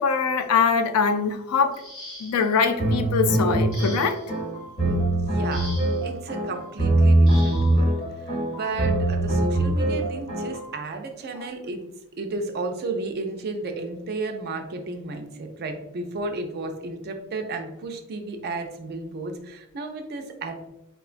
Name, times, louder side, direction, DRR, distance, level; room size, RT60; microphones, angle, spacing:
voice 1, 0.0-1.8 2.2-4.2, left 5 dB, 90° left, 8 dB, 0.4 m, -22 dB
sound 1, 1.7-2.6 3.7-4.4 5.5-6.1 7.3-7.7 8.9-9.1 9.6-9.8, left 1 dB, 65° left, 1.2 m, -41 dB
sound 2, 2.8-10.7, right 1 dB, 30° left, 1.1 m, -22 dB
voice 2, 4.9-5.7 6.0-11.8 12.2-20.7, right 3 dB, 50° right, 5 dB, 0.4 m, -33 dB
3.7 x 2.3 x 2.4 m, 0.92 s
head